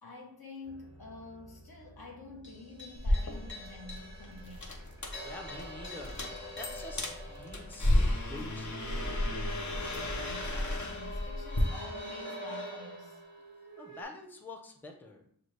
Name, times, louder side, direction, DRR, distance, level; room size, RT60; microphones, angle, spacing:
voice 1, 0.0-4.8 10.2-13.2, left 2 dB, 70° left, 0 dB, 1.1 m, -48 dB
sound 1, 0.7-14.0, equal, 30° left, 1.3 m, -45 dB
sound 2, 2.9-11.6, left 1 dB, 50° left, 0.8 m, -33 dB
voice 2, 5.2-6.2 6.6-9.6 13.8-15.2, left 2 dB, 5° left, 2 dB, 0.6 m, -47 dB
6.1 x 2.4 x 3.2 m, 0.65 s
wide cardioid pair, 60°, 38 cm